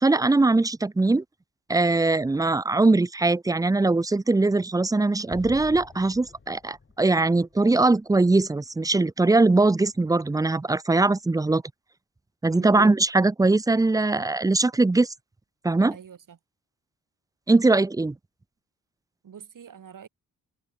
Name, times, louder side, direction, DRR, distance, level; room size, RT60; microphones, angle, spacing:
voice 1, 0.0-1.2 1.7-11.6 12.4-15.1 15.6-15.9 17.5-18.2, right 3 dB, 10° right, 0.5 m, -21 dB
Explosion, 5.3-8.6, left 4 dB, 30° left, 4.2 m, -46 dB
voice 2, 12.5-12.9 15.9-16.4 19.2-20.1, right 8 dB, 60° right, 4.1 m, -45 dB
cardioid pair, 95°, 36 cm